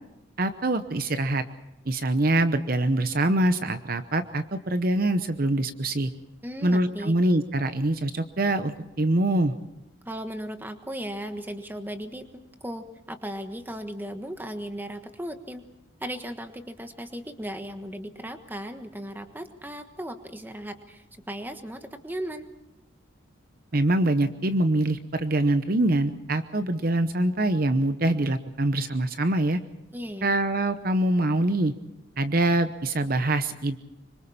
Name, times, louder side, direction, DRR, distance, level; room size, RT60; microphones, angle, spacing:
voice 1, 0.4-1.4 1.9-6.1 6.6-9.5 23.7-29.6 30.2-31.7 32.2-33.8, right 1 dB, 45° right, 10 dB, 0.9 m, -24 dB
voice 2, 6.4-7.1 10.0-15.6 16.0-22.5 29.9-30.4, equal, 10° right, 7 dB, 1.4 m, -36 dB
26.5 x 25.0 x 4.3 m, 0.94 s
head